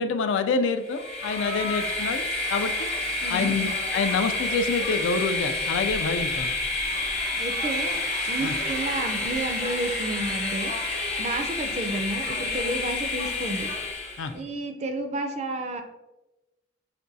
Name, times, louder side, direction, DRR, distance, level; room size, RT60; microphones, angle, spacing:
voice 1, 0.0-2.2 2.5-2.9 3.3-6.5 8.4-8.5 14.2-14.3, left 4 dB, 75° left, 8 dB, 0.3 m, -27 dB
Train, 0.8-14.3, left 2 dB, 35° left, 0.8 m, -29 dB
voice 2, 3.2-3.6 7.3-8.0 8.3-10.7 11.2-13.7 14.3-15.8, right 2 dB, 35° right, 5 dB, 0.4 m, -31 dB
5.8 x 2.2 x 2.6 m, 1.0 s
head